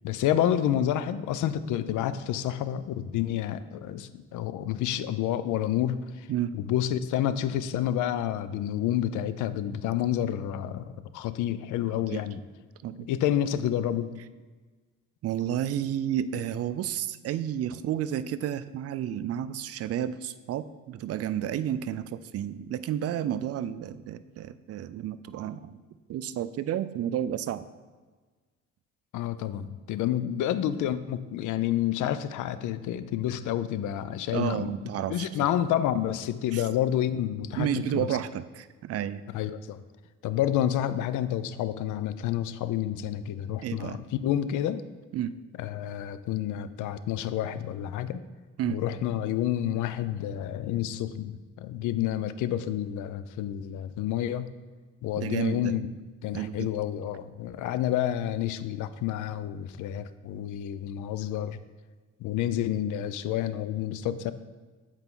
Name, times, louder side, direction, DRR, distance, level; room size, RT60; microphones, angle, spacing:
voice 1, 0.0-6.3 6.5-12.4 13.1-14.1 29.1-37.7 37.9-38.1 39.3-39.8 40.2-44.8 45.6-48.2 48.7-54.5 55.0-55.9 56.2-61.6 62.2-64.3, left 11 dB, 80° left, 13 dB, 0.5 m, -29 dB
voice 2, 6.3-6.6 12.0-12.2 12.8-13.1 15.2-25.8 26.1-27.7 34.3-35.5 36.5-36.7 37.5-39.2 43.6-44.0 45.1-45.3 48.6-48.8 55.2-55.8 56.3-56.7, right 10 dB, 55° right, 14 dB, 0.4 m, -31 dB
8.0 x 4.5 x 3.7 m, 1.4 s
cardioid pair, 90°, 30 cm